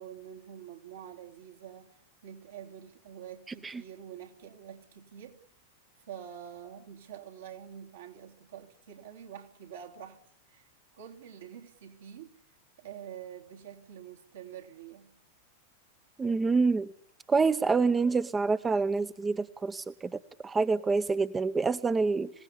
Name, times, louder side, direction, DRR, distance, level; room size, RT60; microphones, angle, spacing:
voice 1, 0.0-2.0 2.2-5.4 6.1-10.2 10.5-10.7 10.9-12.4 12.8-15.1, right 9 dB, 75° right, 3.3 m, -46 dB
voice 2, 16.2-16.9 17.3-22.3, right 4 dB, 15° right, 0.8 m, -27 dB
26.5 x 17.5 x 8.4 m
hypercardioid pair, 95°, 0 cm